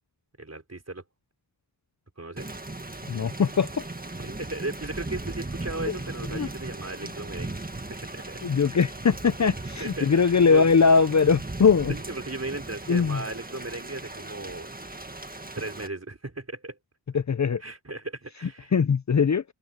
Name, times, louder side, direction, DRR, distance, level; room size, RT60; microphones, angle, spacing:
voice 1, 0.4-1.0 2.2-2.5 4.1-7.6 7.9-8.2 9.8-10.7 11.9-14.7 15.4-16.8 17.6-18.7, right 2 dB, 35° right, 4.5 m, -36 dB
Thunder / Rain, 2.4-15.9, right 2 dB, 20° right, 1.8 m, -38 dB
voice 2, 3.1-3.8 5.9-6.0 6.3-6.5 8.4-11.9 12.9-13.2 17.1-17.6 18.7-19.4, left 5 dB, 40° left, 0.6 m, -21 dB
open air
wide cardioid pair, 75°, 44 cm